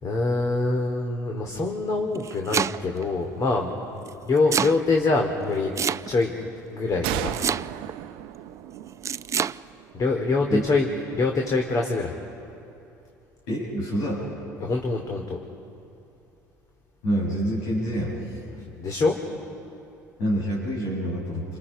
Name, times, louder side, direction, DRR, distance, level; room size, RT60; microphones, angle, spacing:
voice 1, 0.0-3.7 4.3-5.7 6.1-6.3 6.7-7.4 9.9-10.9 11.1-12.1 14.6-15.4 18.8-19.2, left 3 dB, 40° left, 2 dB, 3.0 m, -24 dB
Domestic sounds home sounds, 2.0-3.0 4.1-4.8 5.8-6.4 7.3-8.0 9.0-9.6, right 7 dB, 30° right, 0.5 m, -26 dB
sound 1, 7.0-10.6, right 14 dB, 65° right, 0.9 m, -35 dB
voice 2, 13.5-14.2 17.0-18.1 20.2-21.4, equal, 75° left, -6 dB, 7.7 m, -26 dB
29.0 x 27.5 x 5.0 m, 2.8 s
hypercardioid pair, 70°, 9 cm